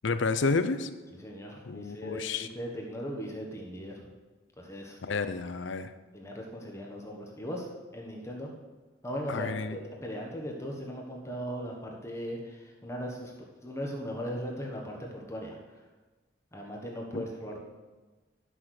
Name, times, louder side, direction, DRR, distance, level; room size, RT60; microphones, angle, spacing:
voice 1, 0.0-0.9 1.7-2.5 5.0-5.9 9.3-9.8 17.1-17.2, left 4 dB, 85° left, 12 dB, 0.6 m, -30 dB
voice 2, 1.2-4.1 4.6-5.2 6.1-7.7 7.9-8.5 9.0-13.3 13.6-15.6 16.5-17.6, equal, 15° left, -1 dB, 1.2 m, -38 dB
11.0 x 6.1 x 6.4 m, 1.3 s
head